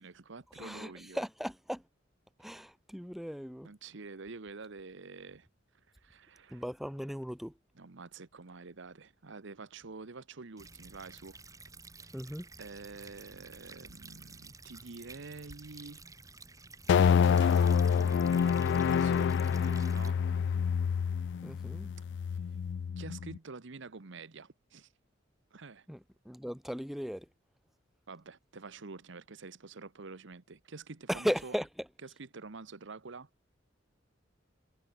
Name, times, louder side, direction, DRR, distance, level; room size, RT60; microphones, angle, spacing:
voice 1, 0.0-1.2 3.6-5.5 5.9-6.6 7.8-11.4 12.0-12.1 12.6-16.0 17.1-20.6 23.0-24.9 25.5-25.9 28.1-31.5 32.0-33.3, right 4 dB, 65° right, 1.0 m, -47 dB
voice 2, 0.5-1.8 2.4-3.7 6.5-7.5 12.1-12.5 21.4-21.9 25.9-27.3 31.1-31.9, equal, ahead, 1.4 m, -37 dB
sound 1, 10.6-20.1, right 3 dB, 15° right, 2.9 m, -52 dB
sound 2, 16.9-23.4, left 7 dB, 60° left, 0.3 m, -27 dB
head